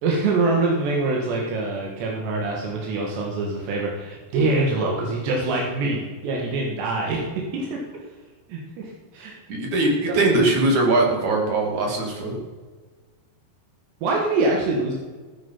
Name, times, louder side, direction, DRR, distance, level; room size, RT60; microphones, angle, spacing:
voice 1, 0.0-7.3 7.5-7.8 8.5-9.4 10.1-10.2 14.0-14.9, right 3 dB, 85° right, -1 dB, 4.0 m, -24 dB
voice 2, 9.5-12.4, right 2 dB, 50° right, 0 dB, 3.6 m, -21 dB
16.0 x 9.8 x 5.7 m, 1.4 s
omnidirectional pair, 4.8 m